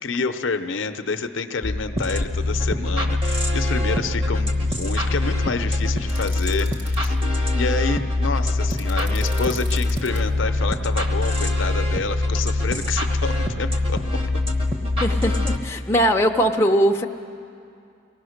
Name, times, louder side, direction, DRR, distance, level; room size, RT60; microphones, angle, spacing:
voice 1, 0.0-7.1 7.5-14.0, left 4 dB, 60° left, 8 dB, 0.7 m, -28 dB
sound 1, 1.6-15.6, left 2 dB, 25° right, 1.2 m, -23 dB
sound 2, 6.1-7.1 8.7-10.2, right 2 dB, 50° right, 2.9 m, -40 dB
voice 2, 15.0-17.0, equal, 10° left, 1 dB, 0.6 m, -20 dB
23.5 x 17.5 x 6.5 m, 2.4 s
head